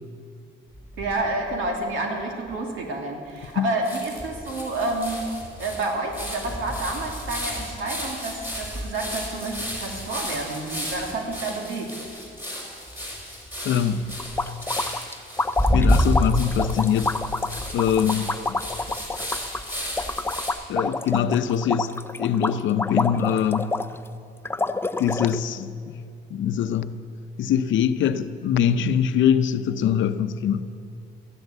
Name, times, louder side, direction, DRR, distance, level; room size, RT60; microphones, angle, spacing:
sound 1, 0.7-1.7 2.2-2.3 2.5-2.6 3.4-3.5 3.8-20.5, equal, 10° right, 4.8 m, -30 dB
voice 1, 1.0-5.2 5.6-12.1, right 2 dB, 90° right, 2.5 m, -29 dB
voice 2, 13.6-14.2 15.7-17.2 17.7-18.6 20.7-21.9 22.2-23.8 25.0-25.7 26.3-27.0 27.4-30.7, left 8 dB, 75° left, 0.7 m, -23 dB
sound 2, 14.2-24.1 24.5-25.4, left 3 dB, 10° left, 0.5 m, -28 dB
14.0 x 10.5 x 8.0 m
cardioid pair, 90°, 20 cm